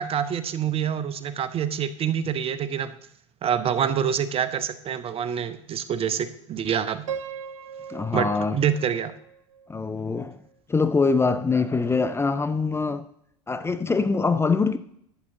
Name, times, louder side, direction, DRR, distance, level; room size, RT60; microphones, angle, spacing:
voice 1, 0.0-2.9 3.4-7.0 8.1-9.1, right 8 dB, 35° right, 0.8 m, -26 dB
Piano, 7.1-10.1, right 8 dB, 75° right, 0.6 m, -38 dB
voice 2, 7.9-8.6 9.7-10.4 10.7-13.1 13.5-14.8, left 4 dB, 15° left, 0.6 m, -23 dB
11.5 x 7.7 x 3.8 m
hypercardioid pair, 80°, 16 cm